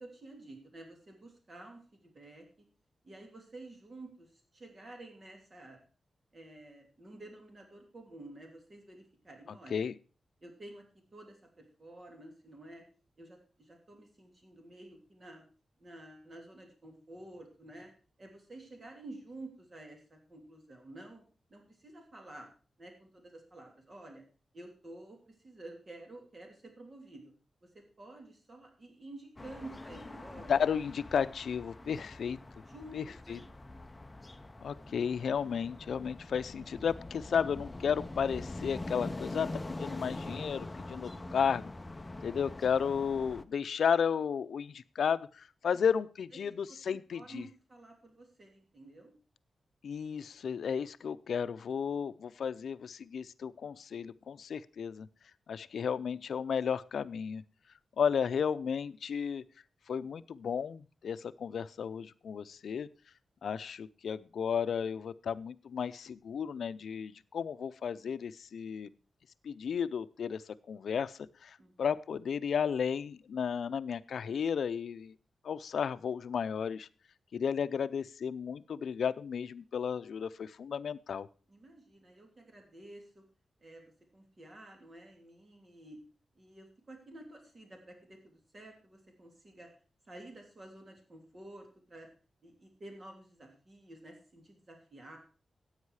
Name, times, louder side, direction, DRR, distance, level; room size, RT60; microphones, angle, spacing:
voice 1, 0.0-2.7 3.0-5.8 6.3-9.8 10.4-10.8 11.1-12.8 13.2-15.4 15.8-17.9 18.2-21.2 21.5-22.5 22.8-24.2 24.5-27.3 27.6-30.6 31.8-33.4 40.9-41.4 45.7-45.8 46.4-49.1 71.6-71.8 81.5-83.2 83.6-86.0 86.3-89.7 90.0-92.1 92.4-95.2, right 2 dB, 35° right, 2 dB, 3.1 m, -51 dB
sound 1, 29.4-43.4, left 2 dB, 20° left, 0.7 m, -44 dB
voice 2, 30.5-32.4 32.9-33.4 34.6-41.7 42.2-47.4 49.8-55.1 55.5-57.4 58.0-59.4 59.9-62.9 63.4-68.9 69.4-75.1 75.4-76.9 77.3-81.3, left 7 dB, 85° left, 14 dB, 0.6 m, -33 dB
15.0 x 8.9 x 4.8 m, 0.38 s
wide cardioid pair, 140°, 0 cm